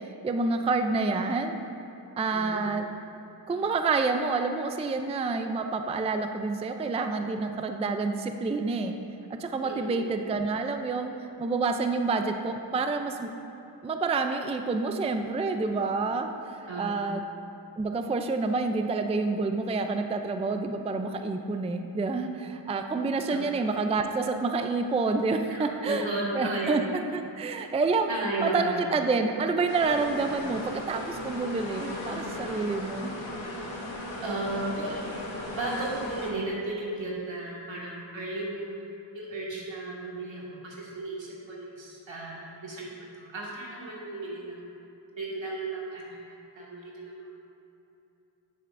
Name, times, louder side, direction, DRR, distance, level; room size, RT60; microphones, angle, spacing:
voice 1, 0.2-1.6 2.2-2.8 3.5-8.9 9.4-11.1 11.4-13.3 13.8-17.2 17.8-26.1 26.4-26.8 27.1-33.2, right 3 dB, 15° right, 6 dB, 0.4 m, -28 dB
voice 2, 2.3-2.6 9.6-10.0 16.7-17.1 23.3-23.5 25.5-26.7 28.1-28.8 34.2-35.1 35.5-38.7 39.1-44.6 45.2-47.2, right 2 dB, 80° right, -4 dB, 1.8 m, -34 dB
sound 1, 29.7-36.3, left 1 dB, 85° left, 1.4 m, -37 dB
9.9 x 7.8 x 2.5 m, 2.9 s
cardioid pair, 65°, 45 cm